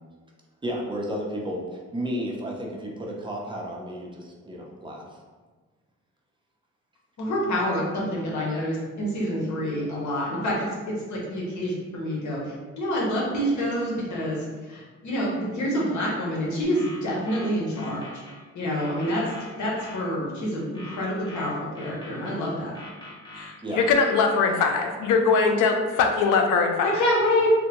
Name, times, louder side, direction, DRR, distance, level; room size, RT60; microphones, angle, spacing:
voice 1, 0.6-5.0 23.6-23.8, equal, 15° right, -2 dB, 0.6 m, -32 dB
voice 2, 7.2-18.1 18.5-19.3 19.6-22.8 26.8-27.5, equal, 70° left, -3 dB, 0.9 m, -27 dB
sound 1, 16.7-18.4 18.7-20.0 20.7-22.4 22.7-24.4, left 1 dB, 15° left, 1.0 m, -43 dB
voice 3, 23.3-27.0, left 4 dB, 85° left, 4 dB, 0.5 m, -22 dB
3.5 x 2.1 x 2.9 m, 1.4 s
cardioid pair, 90°, 30 cm